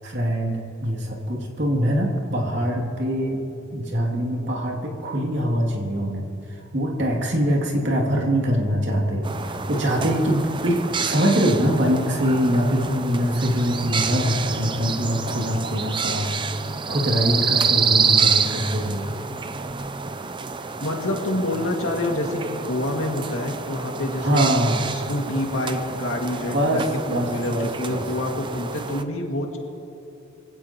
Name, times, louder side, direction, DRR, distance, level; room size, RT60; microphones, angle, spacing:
voice 1, 0.0-3.4 3.7-6.3 6.7-16.4 16.9-19.1 24.2-24.8 26.5-28.0, equal, 60° right, -1 dB, 2.7 m, -23 dB
sound 1, 9.2-29.0, right 5 dB, 25° right, 0.6 m, -28 dB
voice 2, 20.8-24.5 24.9-26.8 27.1-29.6, left 1 dB, 85° left, 1 dB, 2.2 m, -27 dB
23.5 x 16.5 x 3.0 m, 2.8 s
head